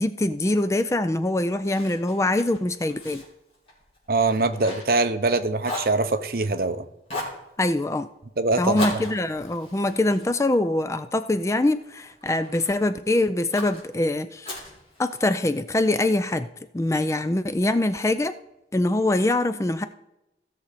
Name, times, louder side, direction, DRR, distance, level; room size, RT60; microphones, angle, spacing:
voice 1, 0.0-3.2 7.6-8.1 8.6-14.5 15.0-16.5 16.7-18.3 18.7-19.9, left 2 dB, 15° left, 11 dB, 0.4 m, -23 dB
Fire, 1.6-5.3 5.6-6.7 7.1-7.4 8.7-11.2 11.7-12.8 13.5-13.8 14.4-15.5, left 1 dB, 30° left, 3.3 m, -37 dB
voice 2, 4.1-6.9 8.4-9.0, right 3 dB, 55° right, 9 dB, 0.7 m, -23 dB
16.0 x 6.5 x 4.1 m, 0.90 s
head